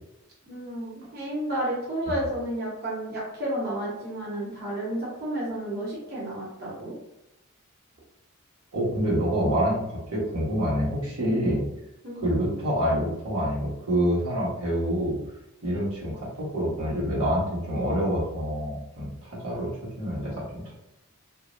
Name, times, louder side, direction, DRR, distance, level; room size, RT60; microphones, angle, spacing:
voice 1, 0.4-6.9 12.0-12.3, right 1 dB, 45° right, -6 dB, 0.9 m, -31 dB
voice 2, 8.7-11.6 12.2-15.2 15.6-20.7, equal, 90° right, -6 dB, 1.3 m, -27 dB
3.1 x 2.6 x 2.5 m, 0.89 s
head